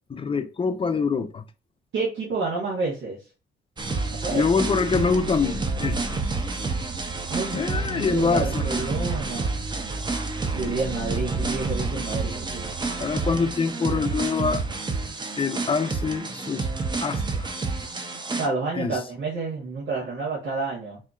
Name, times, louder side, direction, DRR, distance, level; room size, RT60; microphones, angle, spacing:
voice 1, 0.1-1.4 4.3-6.2 7.5-8.9 10.6-10.7 13.0-14.6 15.4-16.7 17.0-17.5 18.7-18.9, left 5 dB, 25° left, 0.5 m, -25 dB
voice 2, 1.9-3.2 4.2-4.5 7.3-9.5 10.5-12.7 18.4-21.0, right 3 dB, 75° right, 1.3 m, -29 dB
sound 1, 3.8-18.5, right 3 dB, 20° right, 0.7 m, -29 dB
4.3 x 2.8 x 2.4 m
cardioid pair, 90°, 20 cm